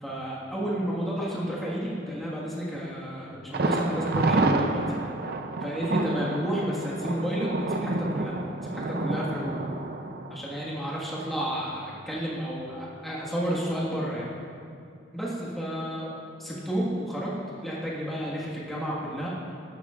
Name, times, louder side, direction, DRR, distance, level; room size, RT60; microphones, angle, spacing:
voice 1, 0.0-4.8 5.6-8.3 8.6-9.6 10.3-14.3 15.1-16.1 16.4-17.3 17.6-19.3, equal, ahead, -7 dB, 1.6 m, -31 dB
Thunder, 3.5-11.3 11.6-11.7 12.1-12.2, right 2 dB, 55° right, 0.5 m, -29 dB
13.0 x 11.5 x 2.4 m, 2.4 s
head